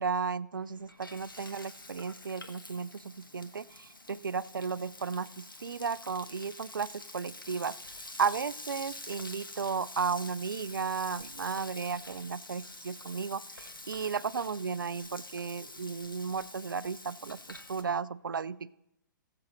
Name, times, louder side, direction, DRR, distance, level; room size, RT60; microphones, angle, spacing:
voice 1, 0.0-18.7, right 5 dB, 75° right, 19 dB, 0.4 m, -34 dB
Frying (food), 0.5-17.8, left 2 dB, 90° left, 1.3 m, -47 dB
18.5 x 7.6 x 3.1 m, 0.83 s
figure-of-eight pair, 125°, 11 cm